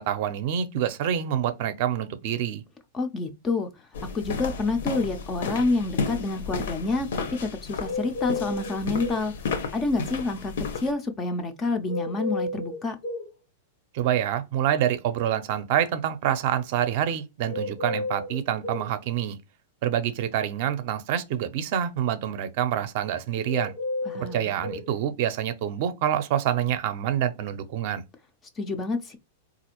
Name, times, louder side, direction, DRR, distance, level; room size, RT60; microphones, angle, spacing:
voice 1, 0.0-2.6 13.9-19.4 19.8-23.7 24.1-28.0, right 10 dB, 40° right, 0.5 m, -27 dB
voice 2, 2.9-3.7 4.1-9.3 9.7-13.0 24.1-24.5 28.6-29.2, left 3 dB, 15° left, 0.4 m, -28 dB
sound 1, 3.9-10.9, left 4 dB, 70° left, 0.7 m, -33 dB
sound 2, 7.8-9.2 11.9-13.3 17.5-18.9 23.4-24.8, left 3 dB, 85° left, 1.2 m, -32 dB
4.0 x 2.4 x 2.9 m
supercardioid pair, 175°, 0 cm